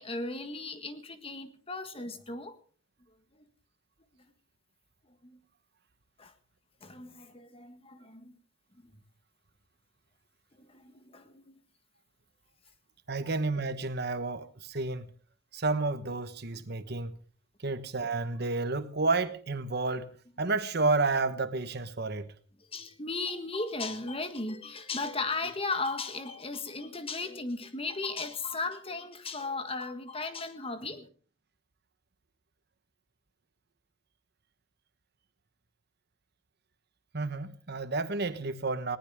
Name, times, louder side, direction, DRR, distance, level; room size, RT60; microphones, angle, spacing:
voice 1, 0.0-2.6 3.3-3.4 5.2-5.4 6.2-6.3 6.8-8.4 10.6-11.6 13.2-13.3 22.6-31.1, left 3 dB, 30° left, 1.6 m, -36 dB
voice 2, 13.1-15.1 15.5-17.1 17.6-20.1 20.4-22.3 37.1-39.0, right 3 dB, 55° right, 1.3 m, -30 dB
19.5 x 18.5 x 3.7 m
head